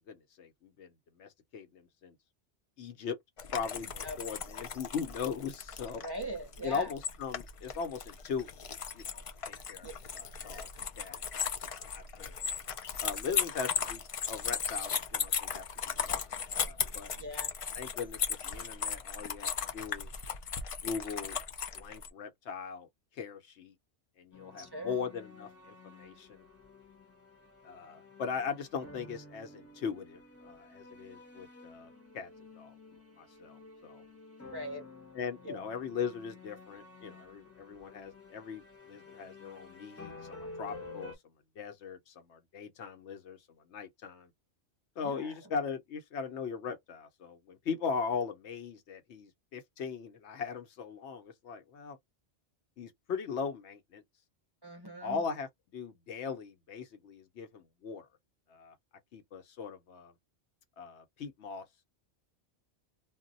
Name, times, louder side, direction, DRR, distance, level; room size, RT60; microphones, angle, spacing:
voice 1, 0.1-2.1 2.8-3.2 3.5-6.0 6.6-8.7 8.9-9.9 10.1-10.7 11.0-11.2 11.6-12.3 13.0-16.3 16.6-17.1 17.7-20.1 20.8-21.4 21.7-22.9 23.1-23.7 24.2-26.4 27.6-32.3 32.5-32.8 33.2-34.0 35.1-41.1 41.6-43.4 43.7-44.3 45.0-52.0 52.8-54.0 55.0-55.5 55.7-58.1 58.5-58.8 59.1-60.1 60.8-61.7, left 6 dB, 80° left, 1.0 m, -39 dB
sound 1, 3.4-22.1, left 6 dB, 60° left, 0.3 m, -37 dB
voice 2, 5.9-6.9 9.8-9.9 17.2-17.5 24.6-25.0 34.5-34.8 35.4-35.6 45.0-45.3 54.6-55.2, right 1 dB, 30° right, 0.5 m, -41 dB
sound 2, 24.3-41.2, left 3 dB, 15° left, 0.8 m, -51 dB
2.3 x 2.1 x 3.8 m
omnidirectional pair, 1.1 m